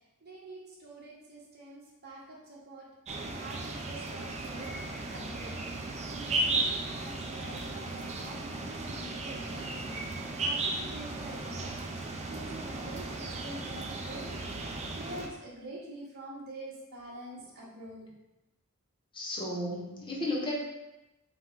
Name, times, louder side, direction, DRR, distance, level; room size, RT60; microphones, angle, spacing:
voice 1, 0.2-5.6 6.1-10.0 10.3-18.1, right 1 dB, 45° right, -5 dB, 1.1 m, -46 dB
sound 1, 3.1-15.3, right 2 dB, 30° right, 0.4 m, -35 dB
voice 2, 19.1-20.6, left 1 dB, 20° left, -4 dB, 0.8 m, -33 dB
4.6 x 2.2 x 3.6 m, 0.97 s
head